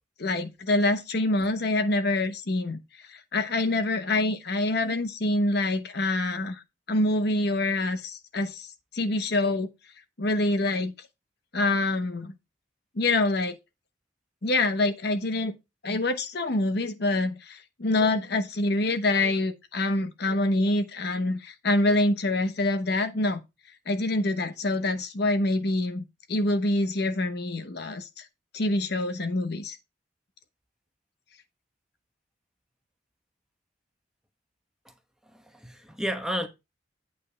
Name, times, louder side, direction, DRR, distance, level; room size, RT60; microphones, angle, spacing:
voice 1, 0.2-2.8 3.1-6.6 6.9-8.7 8.9-9.7 10.2-10.9 11.5-12.3 13.0-13.5 14.4-15.5 15.8-23.4 23.9-26.0 26.3-28.2 28.5-29.8, left 2 dB, 60° left, 1.0 m, -26 dB
voice 2, 35.2-36.5, equal, 5° right, 1.0 m, -32 dB
8.8 x 5.4 x 4.4 m
head